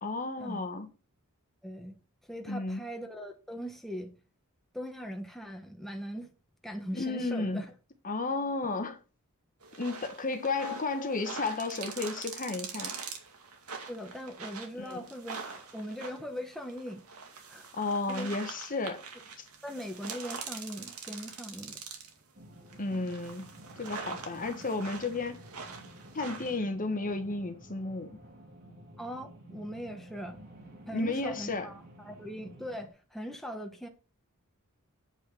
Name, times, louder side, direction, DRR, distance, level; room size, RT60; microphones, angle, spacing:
voice 1, 0.0-0.9 2.5-2.8 6.9-7.6 8.0-9.0 9.8-12.9 14.8-15.0 17.7-19.0 22.8-23.5 23.8-25.4 26.1-28.2 30.9-31.7, left 3 dB, 40° left, 1.2 m, -33 dB
voice 2, 1.6-2.0 2.3-4.1 4.7-6.3 6.6-7.7 8.6-8.7 13.9-17.0 17.5-17.7 18.1-18.5 19.6-21.8 22.9-23.1 29.0-30.4 30.9-33.9, equal, ahead, 1.2 m, -40 dB
sound 1, 9.6-22.2 22.7-26.6, right 5 dB, 90° right, 2.2 m, -44 dB
sound 2, 22.3-32.9, equal, 45° right, 2.3 m, -52 dB
8.7 x 5.7 x 5.7 m
head